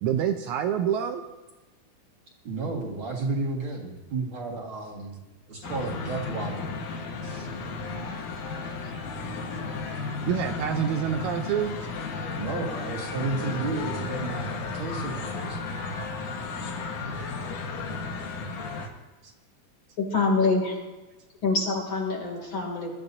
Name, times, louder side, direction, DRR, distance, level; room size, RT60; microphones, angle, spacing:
voice 1, 0.0-1.2 7.2-7.5 8.8-8.9 10.2-11.8 19.2-19.3, right 9 dB, 75° right, 5 dB, 1.9 m, -27 dB
voice 2, 2.4-5.2 5.5-6.7 12.4-15.6, right 3 dB, 45° right, -2 dB, 2.3 m, -32 dB
sound 1, 5.6-18.9, left 4 dB, 75° left, 2.8 m, -34 dB
voice 3, 20.0-20.8 21.4-22.9, left 3 dB, 40° left, -1 dB, 3.1 m, -25 dB
22.0 x 13.0 x 2.7 m, 1.1 s
omnidirectional pair, 3.7 m